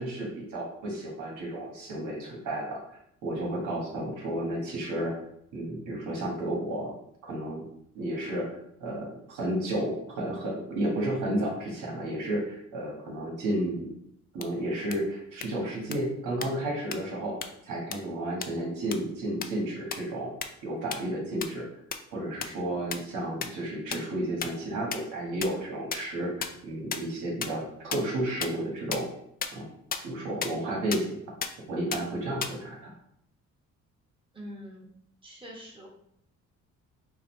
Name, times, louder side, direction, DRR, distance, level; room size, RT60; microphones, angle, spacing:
voice 1, 0.0-2.8 3.2-5.1 5.5-6.9 7.2-7.6 7.9-13.9 14.3-17.4 17.6-20.3 20.6-21.7 22.1-29.0 29.5-29.6 30.0-31.2 31.7-32.9, right 1 dB, 80° right, -2 dB, 1.5 m, -32 dB
sound 1, 14.4-14.5 14.9-15.0 15.4-15.5 15.9-16.0 16.4-16.5 16.9-17.0 17.4-17.5 17.9-18.0 18.4-18.5 18.9-19.0 19.4-19.5 19.9-20.0 20.4-20.5 20.9-21.0 21.4-21.5 21.9-22.0 22.4-22.5 22.9-23.0 23.4-23.5 23.9-24.0 24.4-24.5 24.9-25.0 25.4-25.5 25.9-26.0 26.4-26.5 26.9-27.0 27.4-27.5 27.9-28.0 28.4-28.5 28.9-29.0 29.4-29.5 29.9-30.0 30.4-30.5 30.9-31.0 31.4-31.5 31.9-32.0 32.4-32.5, left 7 dB, 30° left, 0.4 m, -30 dB
voice 2, 34.3-34.9 35.2-35.9, equal, 15° right, -3 dB, 1.4 m, -44 dB
3.9 x 2.4 x 4.3 m, 0.71 s
cardioid pair, 90°, 30 cm